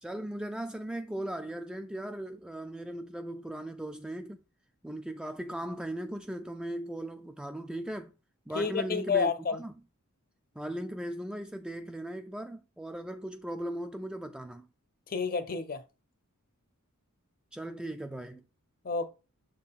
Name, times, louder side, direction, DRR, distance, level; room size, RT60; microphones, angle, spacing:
voice 1, 0.0-4.4 4.8-8.1 8.5-9.7 10.6-14.7 17.5-18.4, right 1 dB, 5° right, 0.3 m, -38 dB
voice 2, 8.5-9.6 15.1-15.8 18.8-19.1, left 5 dB, 40° left, 0.7 m, -29 dB
7.1 x 3.9 x 4.1 m
head